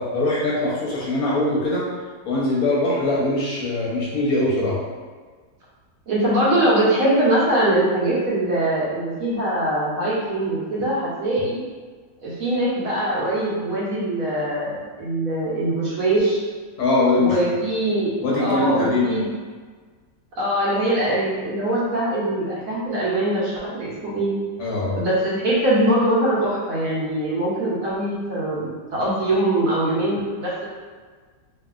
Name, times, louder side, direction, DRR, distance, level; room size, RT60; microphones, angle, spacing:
voice 1, 0.0-1.9 2.2-4.8 16.8-17.4 18.2-19.2 24.6-25.0, left 2 dB, 70° left, -5 dB, 1.0 m, -22 dB
voice 2, 6.1-11.6 12.2-16.4 17.2-18.1 18.4-19.3 20.4-24.3 24.9-30.7, right 1 dB, 65° right, -7 dB, 0.9 m, -22 dB
2.7 x 2.4 x 2.3 m, 1.5 s
omnidirectional pair, 1.8 m